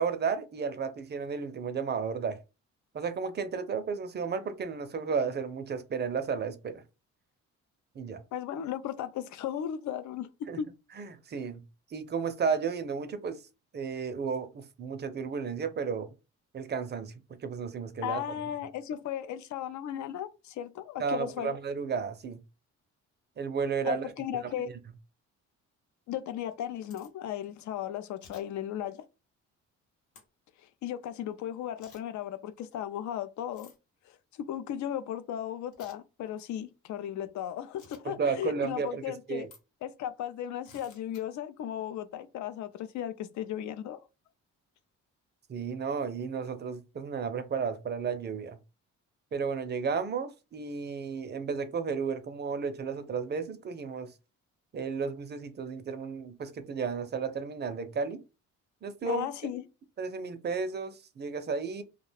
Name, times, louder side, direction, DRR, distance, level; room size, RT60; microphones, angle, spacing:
voice 1, 0.0-2.4 2.9-6.8 8.0-8.2 10.5-10.6 11.0-11.6 11.9-13.4 13.7-16.1 16.5-17.1 17.4-18.2 21.0-22.4 23.4-24.1 24.4-24.5 38.0-39.0 39.3-39.5 45.5-48.6 49.3-54.1 54.7-58.2 58.8-59.3 60.0-61.8, right 5 dB, 35° right, 0.5 m, -33 dB
voice 2, 8.3-10.3 10.6-10.7 18.0-21.6 23.8-24.7 26.1-29.0 30.8-33.7 34.4-39.5 39.8-44.0 59.1-59.6, left 10 dB, 70° left, 0.5 m, -36 dB
Münzen - Münze legen und aufheben Steinboden, 26.5-27.1 28.2-28.4 30.1-30.2 31.8-32.0 33.5-33.8 35.7-36.0 37.8-38.0 39.4-39.6 40.6-41.2, left 4 dB, 85° left, 0.9 m, -55 dB
2.4 x 2.2 x 3.3 m
cardioid pair, 90°, 30 cm